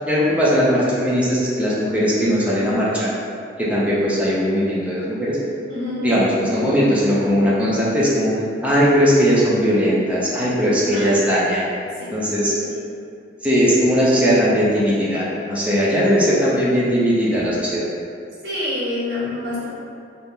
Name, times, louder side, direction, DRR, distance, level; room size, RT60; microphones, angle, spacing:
voice 1, 0.1-3.1 3.6-5.4 6.0-8.3 8.6-11.7 12.1-12.5 13.4-17.8, equal, 5° right, -8 dB, 0.5 m, -19 dB
voice 2, 5.7-6.0 10.9-11.1 12.0-12.1 12.7-12.8 18.4-19.7, left 2 dB, 60° right, -9 dB, 1.1 m, -27 dB
2.8 x 2.0 x 3.5 m, 2.4 s
head